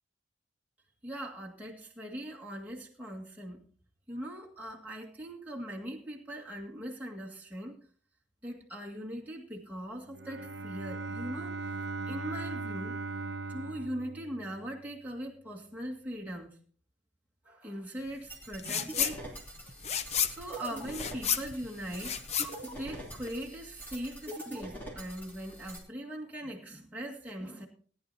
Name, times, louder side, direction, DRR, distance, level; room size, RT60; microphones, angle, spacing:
voice 1, 1.0-3.6 4.1-7.8 8.4-11.7 12.1-13.0 13.5-16.6 17.4-19.2 20.3-22.2 22.8-27.7, equal, 10° right, -2 dB, 1.8 m, -40 dB
Bowed string instrument, 10.0-15.0, right 3 dB, 60° right, 0.9 m, -39 dB
sound 1, 18.3-25.8, right 1 dB, 10° left, 2.9 m, -44 dB
sound 2, 18.6-19.2 19.5-23.4, left 8 dB, 35° left, 0.7 m, -32 dB
19.0 x 10.5 x 2.7 m, 0.43 s
head